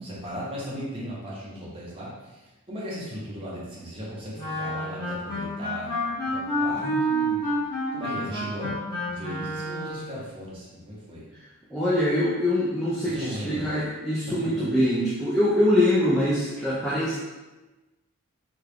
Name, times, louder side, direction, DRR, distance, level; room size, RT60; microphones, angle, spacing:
voice 1, 0.0-7.5 7.9-11.3 13.0-13.7 14.3-14.5, equal, 25° right, -7 dB, 0.8 m, -37 dB
Wind instrument woodwind instrument, 4.4-10.1, equal, 15° left, 1.2 m, -29 dB
voice 2, 11.7-17.2, left 1 dB, ahead, -10 dB, 0.4 m, -24 dB
2.9 x 2.3 x 3.4 m, 1.1 s
head